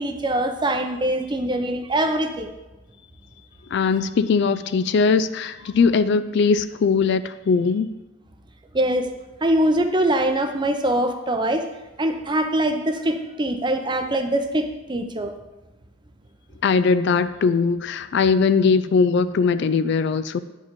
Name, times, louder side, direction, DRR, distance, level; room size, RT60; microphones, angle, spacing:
voice 1, 0.0-2.5 8.7-9.1 9.4-11.7 12.0-15.3, right 1 dB, 20° right, 7 dB, 0.6 m, -23 dB
voice 2, 3.7-7.9 16.6-20.4, left 5 dB, 55° left, 13 dB, 0.3 m, -20 dB
9.6 x 5.3 x 5.2 m, 1.1 s
head